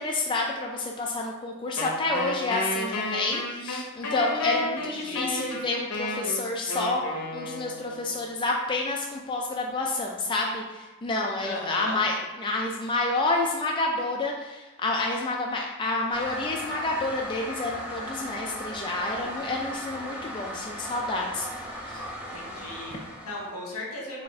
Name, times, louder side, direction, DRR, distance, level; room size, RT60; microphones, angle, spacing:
voice 1, 0.0-7.0 7.3-21.5 21.9-22.0, left 2 dB, 20° left, -1 dB, 0.3 m, -29 dB
Wind instrument woodwind instrument, 1.8-8.1, left 2 dB, 90° left, 0.7 m, -31 dB
voice 2, 4.8-5.5 11.4-12.0 22.3-24.2, left 1 dB, 75° left, -3 dB, 1.3 m, -37 dB
Toilet flush, 16.1-23.6, equal, 10° right, 1.1 m, -37 dB
4.2 x 2.5 x 4.2 m, 1.2 s
head